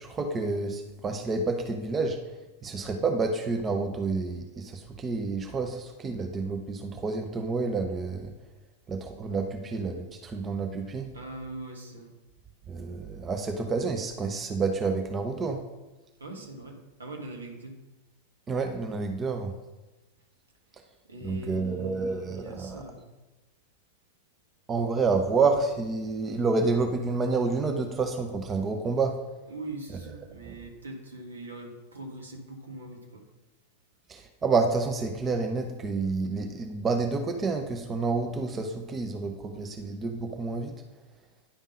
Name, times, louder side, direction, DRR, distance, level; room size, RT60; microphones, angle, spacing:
voice 1, 0.0-2.2 2.6-8.3 8.9-11.1 12.7-15.6 18.5-19.5 21.2-22.8 24.7-29.2 30.4-30.6 34.1-40.8, right 4 dB, 20° right, 5 dB, 0.6 m, -29 dB
voice 2, 11.1-12.1 16.2-17.8 21.1-23.1 29.5-33.3, right 1 dB, 75° right, 2 dB, 1.4 m, -42 dB
10.0 x 3.6 x 5.2 m, 1.1 s
figure-of-eight pair, 90°, 0 cm